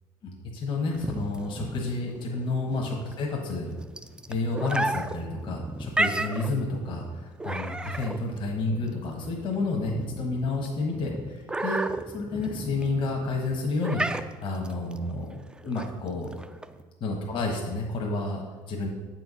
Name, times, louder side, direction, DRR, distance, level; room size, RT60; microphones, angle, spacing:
voice 1, 0.2-3.7 4.3-11.8 12.1-14.0 14.4-16.3 17.0-18.9, left 3 dB, 50° left, -1 dB, 1.4 m, -30 dB
sound 1, 0.9-16.8, right 2 dB, 10° right, 0.4 m, -34 dB
7.5 x 4.6 x 5.5 m, 1.3 s
cardioid pair, 105°, 10 cm